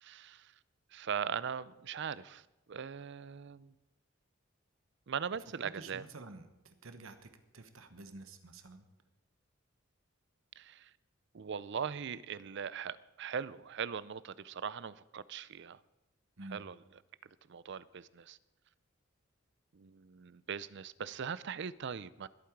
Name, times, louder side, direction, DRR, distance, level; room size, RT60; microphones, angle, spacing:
voice 1, 0.0-0.5 0.9-3.7 5.1-6.0 10.6-10.9 11.3-15.8 16.5-16.8 17.5-18.4 19.7-22.3, right 7 dB, 60° right, 0.5 m, -40 dB
voice 2, 5.6-8.9 16.4-16.6, right 2 dB, 80° right, 1.2 m, -50 dB
20.5 x 8.6 x 4.7 m
head